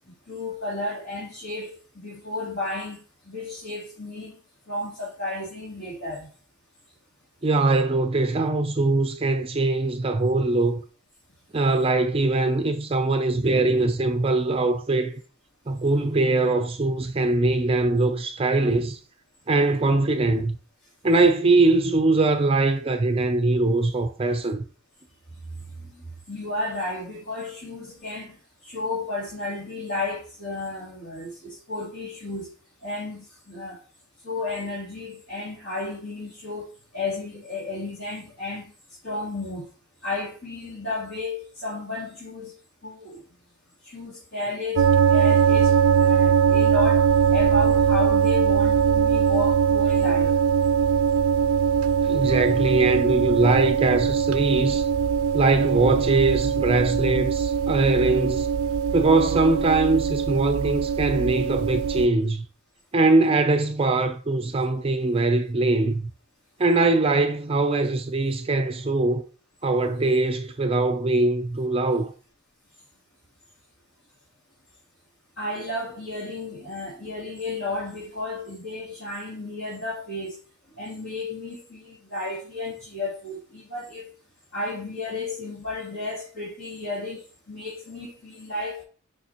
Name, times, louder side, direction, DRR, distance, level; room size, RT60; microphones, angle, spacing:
voice 1, 0.3-3.0 3.2-4.4 4.7-6.3 25.8-25.9 26.3-28.4 28.6-32.5 32.8-33.8 34.2-38.7 39.0-39.6 40.0-42.5 42.8-43.2 43.8-50.4 75.4-80.4 80.8-84.1 84.5-88.8, left 2 dB, 60° left, 2.9 m, -32 dB
voice 2, 7.4-10.8 11.5-15.2 15.7-19.0 19.5-20.6 21.0-24.6 52.0-54.9 55.3-58.5 58.9-62.4 62.9-66.1 66.6-69.2 69.6-72.1, right 2 dB, 25° right, 0.4 m, -22 dB
sound 1, 44.8-62.1, right 7 dB, 85° right, 0.3 m, -21 dB
6.8 x 5.4 x 2.9 m
head